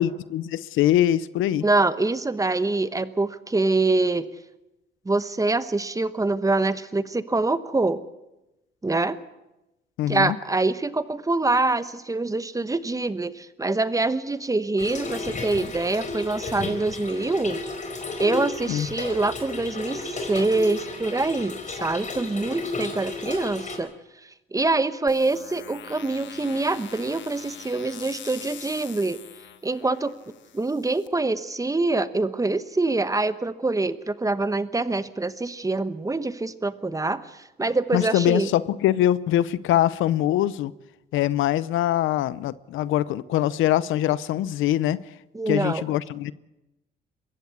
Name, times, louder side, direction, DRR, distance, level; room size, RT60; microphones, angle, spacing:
voice 1, 0.0-1.6 10.0-10.4 18.7-18.9 37.9-40.7 41.1-45.0 45.5-46.3, left 12 dB, 85° left, 19 dB, 0.6 m, -23 dB
voice 2, 1.6-4.3 5.0-8.0 8.8-9.2 10.1-17.6 18.2-23.9 24.5-29.2 29.6-30.1 30.5-38.5 45.3-45.8, right 2 dB, 15° right, 14 dB, 1.1 m, -25 dB
Trickle dribble / Fill (with liquid), 14.8-23.8, left 3 dB, 40° left, 4.5 m, -33 dB
sound 1, 25.1-31.1, left 10 dB, 70° left, 1.4 m, -43 dB
22.5 x 15.5 x 8.4 m, 0.97 s
cardioid pair, 90°, 20 cm